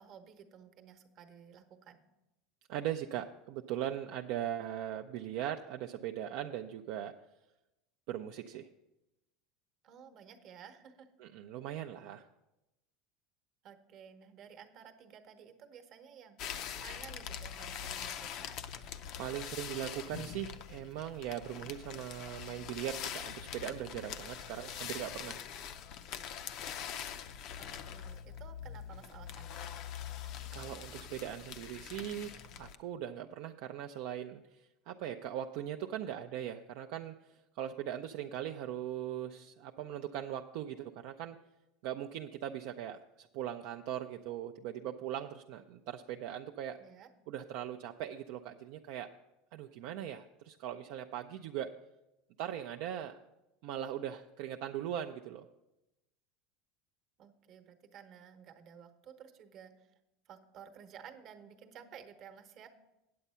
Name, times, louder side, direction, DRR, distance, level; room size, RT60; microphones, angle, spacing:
voice 1, 0.0-2.0 9.8-11.1 13.6-18.6 27.5-29.7 46.8-47.1 57.2-59.9 60.3-62.7, right 8 dB, 45° right, 7 dB, 1.0 m, -54 dB
voice 2, 2.7-7.1 8.1-8.7 11.2-12.2 19.2-25.4 30.5-41.4 41.8-46.8 47.3-49.1 49.5-51.7 52.4-53.2 53.6-55.5, right 11 dB, 65° right, 4 dB, 0.4 m, -40 dB
sound 1, 16.4-32.8, left 8 dB, 55° left, 0.5 m, -43 dB
8.5 x 8.1 x 5.6 m, 0.94 s
supercardioid pair, 125°, 0 cm